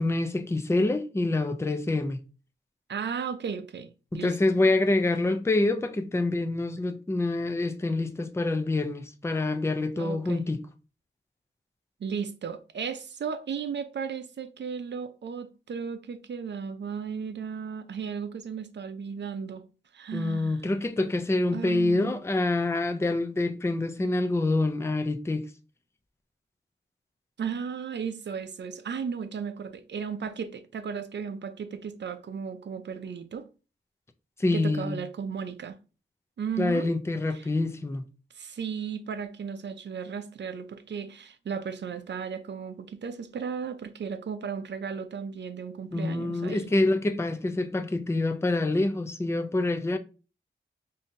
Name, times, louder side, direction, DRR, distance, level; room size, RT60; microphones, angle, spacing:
voice 1, 0.0-2.2 4.1-10.6 20.1-25.5 34.4-35.0 36.6-38.0 45.9-50.0, left 2 dB, 15° left, 0.4 m, -26 dB
voice 2, 2.9-4.3 10.0-10.4 12.0-19.6 19.9-20.6 21.5-22.2 27.4-33.5 34.5-35.8 36.4-36.9 37.4-37.5 38.3-46.7, right 6 dB, 60° right, 0.5 m, -35 dB
5.2 x 2.7 x 2.5 m
wide cardioid pair, 125°, 20 cm